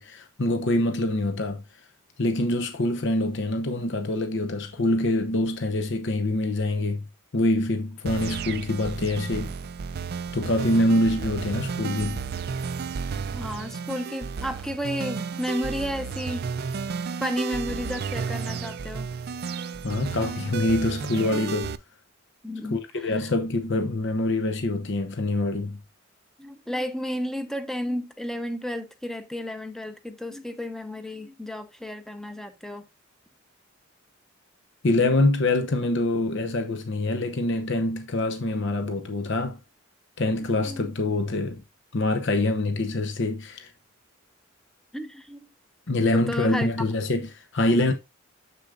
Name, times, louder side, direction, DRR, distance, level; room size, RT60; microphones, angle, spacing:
voice 1, 0.0-1.6 2.2-7.0 7.3-9.5 10.3-12.2 19.8-21.7 22.7-25.8 34.8-39.6 40.2-41.6 41.9-43.7 45.9-47.9, left 2 dB, 60° left, 0.9 m, -25 dB
sound 1, 8.1-21.8, right 5 dB, 50° right, 0.4 m, -32 dB
voice 2, 13.3-16.5 17.2-19.1 22.4-23.2 26.4-32.8 40.6-40.9 44.9-45.5 46.1-46.7, equal, ahead, 0.7 m, -32 dB
6.9 x 6.7 x 2.4 m
head